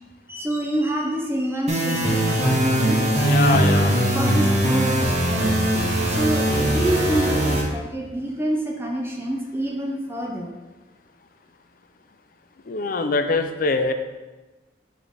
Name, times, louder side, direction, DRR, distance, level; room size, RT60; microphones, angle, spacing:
voice 1, 0.3-3.4 4.1-5.6 6.1-10.5, right 1 dB, 15° right, 0 dB, 0.7 m, -27 dB
sound 1, 1.7-7.6, right 1 dB, 40° right, 1.2 m, -20 dB
voice 2, 3.2-4.2 12.7-13.9, left 3 dB, 50° left, 8 dB, 0.5 m, -23 dB
6.1 x 3.3 x 5.3 m, 1.1 s
head